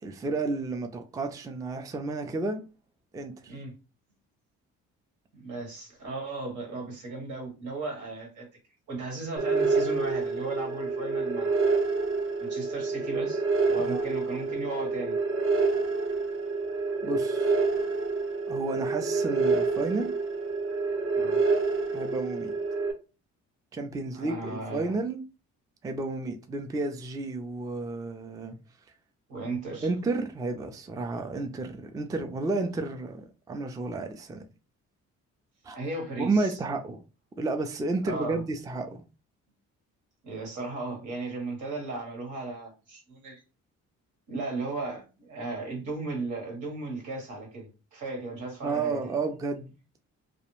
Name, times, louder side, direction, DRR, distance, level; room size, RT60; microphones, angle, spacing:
voice 1, 0.0-2.6 3.1-3.6 13.8-14.1 17.0-17.5 18.5-20.1 21.9-22.5 23.7-25.2 25.8-28.6 29.8-34.4 35.6-35.8 36.2-37.0 37.4-39.0 48.6-49.7, right 3 dB, 10° right, 0.3 m, -31 dB
voice 2, 5.3-8.5 8.9-11.6 12.4-15.2 21.1-21.4 24.1-24.9 29.3-29.9 35.7-36.6 38.0-38.4 40.2-43.4 44.3-49.1, right 3 dB, 75° right, 1.3 m, -36 dB
sound 1, 9.4-22.9, right 4 dB, 45° right, 0.6 m, -27 dB
2.4 x 2.0 x 3.0 m
cardioid pair, 90°, 30 cm